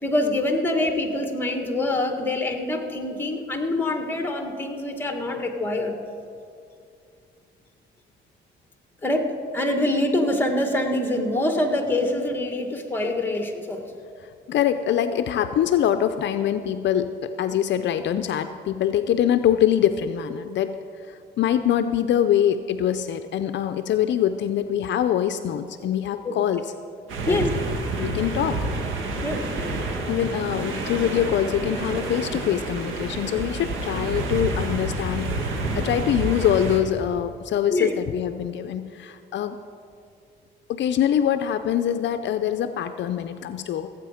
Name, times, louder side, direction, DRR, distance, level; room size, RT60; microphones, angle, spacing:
voice 1, 0.0-6.0 9.0-13.8 26.2-26.3 27.2-27.5 29.2-29.5 37.7-37.9, left 1 dB, 10° left, 4 dB, 1.7 m, -25 dB
voice 2, 14.2-20.8 21.1-26.7 27.3-27.4 28.0-28.7 30.1-39.6 40.7-43.9, left 10 dB, 65° left, 10 dB, 0.5 m, -24 dB
sound 1, 27.1-36.8, right 2 dB, 85° right, 1.6 m, -29 dB
16.5 x 8.4 x 5.0 m, 2.4 s
cardioid pair, 90°, 20 cm